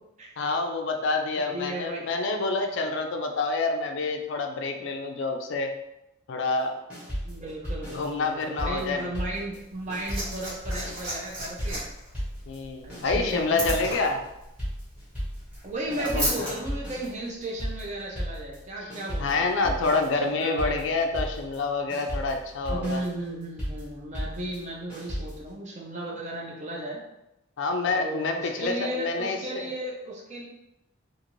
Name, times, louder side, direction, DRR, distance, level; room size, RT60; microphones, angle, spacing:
voice 1, 0.4-5.7 6.3-6.7 7.9-9.1 12.5-14.2 16.0-16.5 18.8-18.9 19.2-23.0 27.6-29.7, left 3 dB, 60° left, 4 dB, 0.4 m, -27 dB
voice 2, 1.4-2.1 7.2-11.8 12.8-13.7 15.6-19.7 20.2-20.8 22.7-27.0 27.9-30.5, right 1 dB, 35° right, -2 dB, 0.5 m, -35 dB
sound 1, 6.9-9.6 9.9-25.5, equal, 5° right, 0.9 m, -35 dB
Liquid, 9.6-16.5 17.6-17.7, right 1 dB, 65° right, 1.5 m, -35 dB
2.5 x 2.5 x 3.0 m, 0.89 s
head